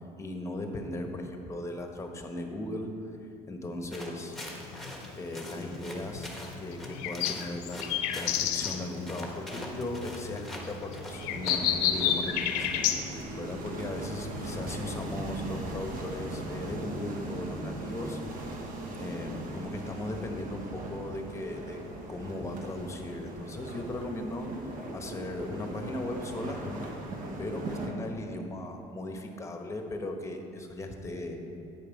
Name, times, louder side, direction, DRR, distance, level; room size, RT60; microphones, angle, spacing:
voice 1, 0.2-2.9 3.2-4.4 5.1-6.3 6.6-7.8 8.1-12.7 13.4-18.2 19.0-21.8 22.1-24.5 24.9-27.0 27.4-31.4, left 1 dB, 20° left, 4 dB, 1.0 m, -37 dB
sound 1, 3.9-13.2, left 1 dB, ahead, 1.3 m, -44 dB
sound 2, 4.3-13.0, left 10 dB, 85° left, 0.7 m, -31 dB
sound 3, 11.1-27.9, right 1 dB, 65° right, 1.3 m, -39 dB
9.1 x 5.3 x 5.2 m, 2.7 s
supercardioid pair, 100°, 15 cm